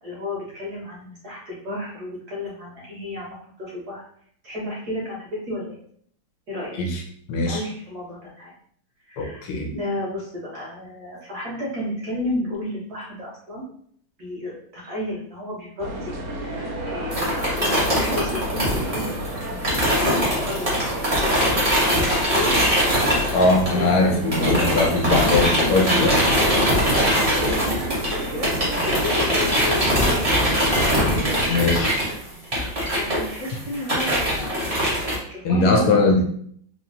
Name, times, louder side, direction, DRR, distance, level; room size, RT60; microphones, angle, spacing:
voice 1, 0.0-4.0 4.4-5.8 6.5-6.8 7.4-8.5 9.0-9.4 9.7-13.6 14.2-19.2 19.5-21.4 21.7-22.5 22.8-23.0 23.3-25.8 26.3-28.5 28.8-30.1 30.9-31.3 31.9-32.3 33.0-36.2, left 1 dB, 50° right, -6 dB, 1.6 m, -33 dB
voice 2, 7.3-7.6 9.2-9.7 23.3-26.3 31.5-31.9 35.4-36.2, left 2 dB, 80° left, 1 dB, 1.6 m, -20 dB
sound 1, 15.8-31.5, right 1 dB, 75° right, 1.7 m, -32 dB
sound 2, 17.1-24.0 24.3-35.2, equal, 25° right, 0.9 m, -22 dB
4.0 x 3.0 x 2.6 m, 0.62 s
omnidirectional pair, 2.4 m